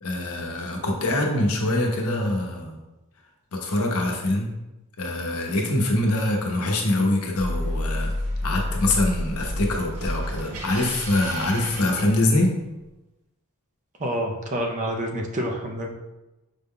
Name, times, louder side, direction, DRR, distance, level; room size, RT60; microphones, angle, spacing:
voice 1, 0.0-2.8 3.5-4.5 5.0-8.1 8.4-12.5, left 1 dB, 80° left, 1 dB, 0.7 m, -24 dB
sound 1, 7.3-12.6, left 1 dB, 80° right, 0.7 m, -30 dB
voice 2, 14.0-15.9, right 1 dB, 35° right, 2 dB, 0.5 m, -28 dB
5.1 x 2.2 x 3.6 m, 1.0 s
head